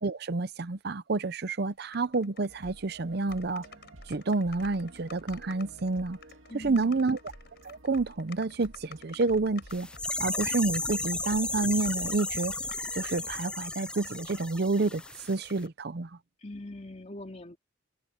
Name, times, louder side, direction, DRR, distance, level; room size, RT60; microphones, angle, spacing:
voice 1, 0.0-3.6 4.1-6.2 6.5-7.2 7.6-9.9 10.2-12.5 12.9-15.0 15.3-16.1, right 3 dB, 55° right, 0.6 m, -29 dB
sound 1, 1.9-2.7 3.0-3.1 3.3-10.3 10.7-11.1 11.6-14.5 14.8-15.7, left 5 dB, 55° left, 7.1 m, -52 dB
sound 2, 2.5-13.4, right 1 dB, 80° right, 2.4 m, -52 dB
voice 2, 6.5-7.1 16.4-17.6, left 1 dB, 35° left, 2.6 m, -42 dB
sound 3, 9.7-15.3 15.6-15.7, left 2 dB, 5° left, 0.3 m, -34 dB
open air
head